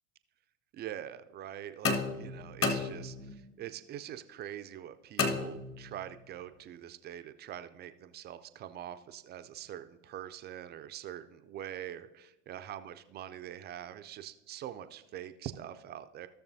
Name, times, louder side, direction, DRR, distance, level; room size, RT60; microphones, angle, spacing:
voice 1, 0.7-12.1 12.5-16.3, right 11 dB, 25° right, 10 dB, 0.4 m, -44 dB
sound 1, 1.8-3.5 5.2-6.1, left 4 dB, 35° left, 1.3 m, -33 dB
15.0 x 6.7 x 2.7 m, 1.0 s
hypercardioid pair, 85°, 38 cm